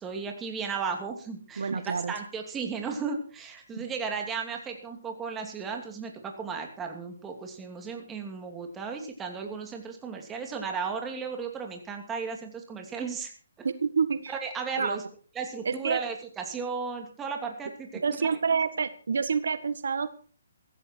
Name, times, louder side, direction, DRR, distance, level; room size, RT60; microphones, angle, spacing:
voice 1, 0.0-13.3 13.6-13.7 14.3-15.0 15.3-18.0, right 5 dB, 10° right, 3 dB, 2.7 m, -35 dB
voice 2, 1.6-2.1 3.7-3.8 13.6-14.4 14.8-15.0 15.6-16.0 18.0-20.1, right 5 dB, 75° right, 13 dB, 1.4 m, -28 dB
15.5 x 15.0 x 4.6 m, 0.41 s
hypercardioid pair, 160°, 0 cm